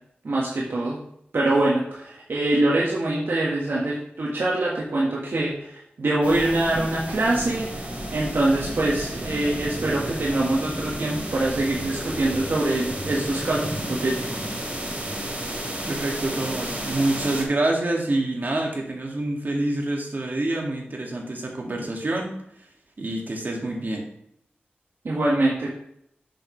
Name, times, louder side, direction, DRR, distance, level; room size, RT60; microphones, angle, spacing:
voice 1, 0.2-1.0 1.3-14.5 25.0-25.7, right 2 dB, 75° right, -4 dB, 1.5 m, -24 dB
sound 1, 6.2-17.4, right 1 dB, 35° right, 3.0 m, -32 dB
voice 2, 15.9-22.3 23.0-24.1, right 2 dB, 55° right, -1 dB, 2.1 m, -26 dB
7.6 x 7.0 x 3.2 m, 0.73 s
wide cardioid pair, 60°, 4 cm